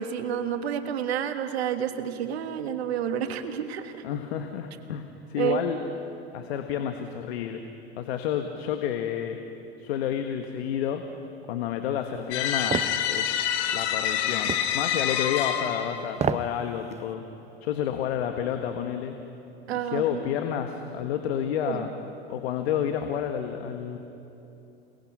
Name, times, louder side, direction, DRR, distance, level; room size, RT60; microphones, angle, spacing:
voice 1, 0.0-4.0 5.4-5.6 19.7-20.2 21.6-21.9, right 9 dB, 75° right, 8 dB, 1.7 m, -29 dB
voice 2, 4.0-5.8 6.3-7.6 8.0-9.4 9.8-11.0 11.5-13.5 13.7-17.2 17.6-19.1 19.7-21.9 22.3-24.0, left 9 dB, 70° left, 6 dB, 1.6 m, -30 dB
sound 1, 12.3-16.1, left 10 dB, 55° left, 1.7 m, -27 dB
sound 2, 12.7-13.0 14.5-14.7 16.1-16.5 16.9-17.0, right 7 dB, 20° right, 0.8 m, -27 dB
29.5 x 19.5 x 6.2 m, 2.9 s
hypercardioid pair, 90°, 32 cm